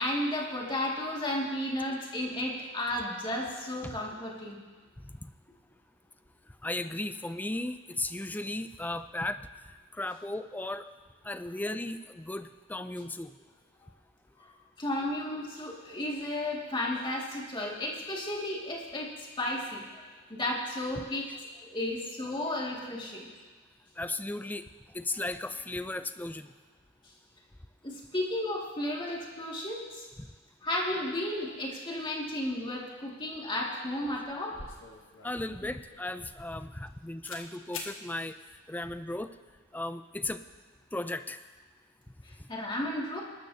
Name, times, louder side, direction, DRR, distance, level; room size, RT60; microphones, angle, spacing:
voice 1, 0.0-4.6 14.4-14.5 14.8-19.8 20.3-21.3 21.6-23.3 27.8-30.1 30.6-34.6 42.2-43.2, left 1 dB, 25° left, -3 dB, 2.2 m, -33 dB
voice 2, 6.6-10.9 11.2-13.3 24.0-24.7 24.9-26.5 30.2-30.3 35.2-38.3 38.7-39.3 39.7-40.4 40.9-41.4, left 2 dB, 10° left, 11 dB, 0.4 m, -36 dB
sound 1, 33.8-34.0 34.2-36.9 37.2-37.5 37.7-38.0, left 4 dB, 70° left, 1.6 m, -45 dB
22.0 x 13.0 x 2.8 m, 1.4 s
head